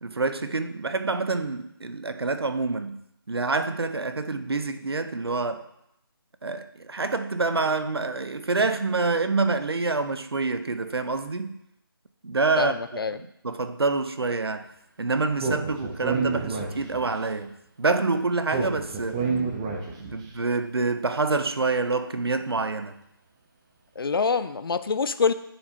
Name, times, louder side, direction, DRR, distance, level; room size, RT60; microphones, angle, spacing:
voice 1, 0.0-3.0 3.3-5.6 6.4-11.6 12.2-14.7 15.0-19.2 20.0-22.9, right 3 dB, 85° right, 0.6 m, -27 dB
voice 2, 12.6-13.2 24.0-25.3, left 5 dB, 65° left, 0.4 m, -25 dB
Speech, 15.4-17.2 18.5-20.2, right 4 dB, 10° right, 0.4 m, -29 dB
9.7 x 4.3 x 2.7 m
figure-of-eight pair, 155°, 13 cm